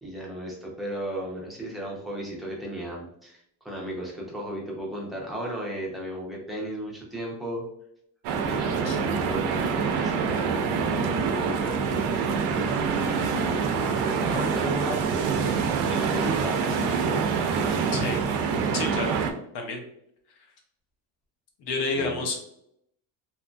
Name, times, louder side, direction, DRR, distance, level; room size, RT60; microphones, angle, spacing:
voice 1, 0.0-7.7 8.4-12.1 12.5-15.6 15.8-17.2 17.6-18.2 21.9-22.3, right 1 dB, ahead, -3 dB, 0.5 m, -35 dB
sound 1, 8.2-19.3, right 5 dB, 70° right, 0.6 m, -26 dB
voice 2, 17.9-18.2 18.7-19.2 19.5-19.8 21.6-22.4, left 3 dB, 65° left, 3 dB, 0.9 m, -29 dB
2.9 x 2.5 x 2.2 m, 0.74 s
cardioid pair, 165°, 42 cm